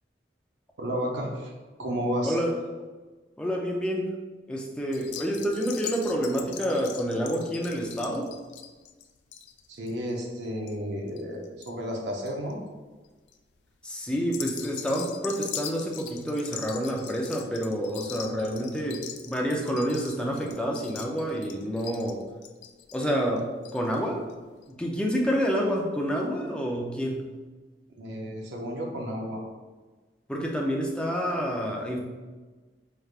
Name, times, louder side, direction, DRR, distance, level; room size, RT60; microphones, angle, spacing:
voice 1, 0.8-1.5 1.8-2.4 9.7-12.6 28.0-29.4, equal, 75° right, 0 dB, 0.6 m, -32 dB
voice 2, 3.4-4.1 4.5-8.3 13.8-22.2 22.9-24.2 24.7-27.3 30.3-32.0, equal, 5° left, -1 dB, 0.4 m, -28 dB
sound 1, 4.9-11.7 12.0-12.5 13.0-13.4 14.2-24.0 24.3-24.4 24.6-24.7, left 9 dB, 75° left, 0.3 m, -41 dB
4.6 x 3.3 x 2.4 m, 1.3 s
head